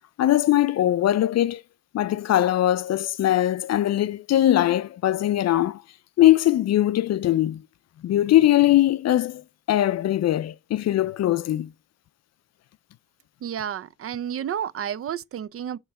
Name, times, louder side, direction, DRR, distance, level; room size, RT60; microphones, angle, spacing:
voice 1, 0.2-1.6 1.9-5.8 6.2-7.6 8.0-9.4 9.7-11.7, left 13 dB, 60° left, 0.4 m, -21 dB
voice 2, 13.4-15.8, right 9 dB, 50° right, 0.5 m, -31 dB
6.8 x 3.1 x 4.6 m
cardioid pair, 125°, 30 cm